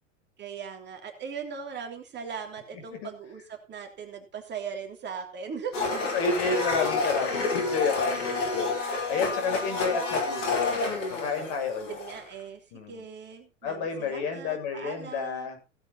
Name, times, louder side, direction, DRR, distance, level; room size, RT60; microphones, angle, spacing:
voice 1, 0.4-6.2 9.7-10.0 11.9-15.6, right 6 dB, 30° right, 4 dB, 3.2 m, -39 dB
Domestic sounds home sounds, 5.7-12.3, left 3 dB, 70° left, 5.5 m, -29 dB
voice 2, 5.9-12.0 12.7-12.9 13.6-15.6, left 5 dB, 50° left, 5 dB, 7.2 m, -30 dB
17.0 x 8.8 x 4.2 m, 0.29 s
hypercardioid pair, 100°, 38 cm